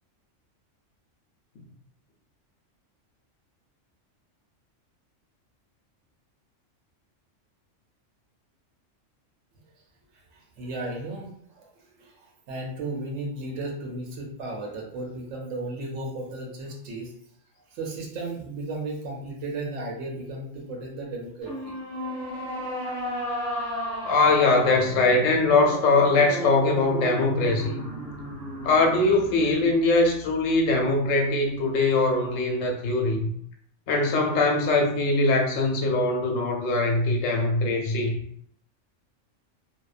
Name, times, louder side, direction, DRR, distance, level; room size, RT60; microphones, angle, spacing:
voice 1, 10.3-11.7 12.0-17.1 17.7-21.8, right 2 dB, 85° right, 0 dB, 1.0 m, -35 dB
sound 1, 21.4-30.8, equal, 40° right, 1.3 m, -34 dB
voice 2, 24.0-27.8 28.6-33.3 33.9-38.2, left 3 dB, 85° left, 2 dB, 1.0 m, -22 dB
2.7 x 2.1 x 2.4 m, 0.66 s
omnidirectional pair, 1.3 m